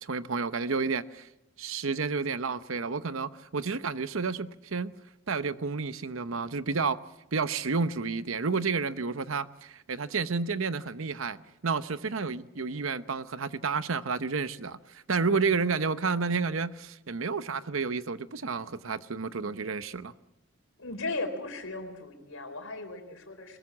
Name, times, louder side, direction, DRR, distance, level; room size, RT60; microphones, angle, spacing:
voice 1, 0.0-1.3 1.6-4.9 5.3-7.0 7.3-20.1, right 4 dB, 65° right, 0.8 m, -30 dB
voice 2, 20.8-23.6, left 2 dB, 65° left, 4.2 m, -37 dB
22.0 x 21.0 x 7.4 m
head